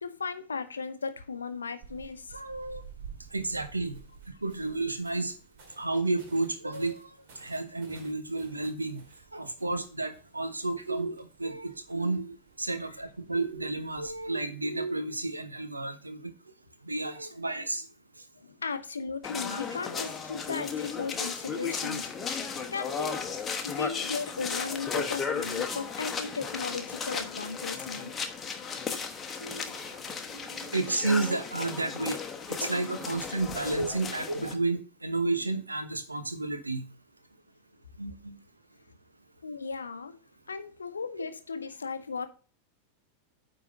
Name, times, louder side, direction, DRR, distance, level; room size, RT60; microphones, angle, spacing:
voice 1, 0.0-2.4 18.4-22.1 22.7-23.2 23.6-28.1 39.4-40.2 40.5-42.3, left 5 dB, 75° left, 0.8 m, -36 dB
sound 1, 1.8-14.2, right 7 dB, 50° right, 2.2 m, -53 dB
voice 2, 2.3-2.8 3.3-4.0 4.4-5.3 5.8-9.0 9.3-16.3 16.8-17.9 21.5-21.6 24.9-25.0 29.4-30.0 30.3-32.2 32.5-36.9 38.0-38.4, right 2 dB, 80° right, 1.0 m, -32 dB
sound 2, 19.2-34.5, left 6 dB, 20° left, 1.1 m, -35 dB
9.3 x 3.9 x 5.1 m
figure-of-eight pair, 90°, 0 cm